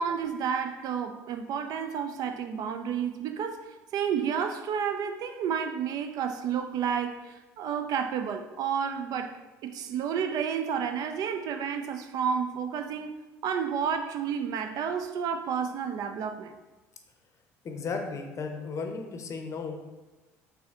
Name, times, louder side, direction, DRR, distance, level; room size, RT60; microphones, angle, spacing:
voice 1, 0.0-9.4 9.6-13.1 13.4-16.6, right 7 dB, 55° right, 0.3 m, -31 dB
voice 2, 17.6-19.9, left 4 dB, 40° left, 0.6 m, -35 dB
4.1 x 2.7 x 3.5 m
hypercardioid pair, 65°, 8 cm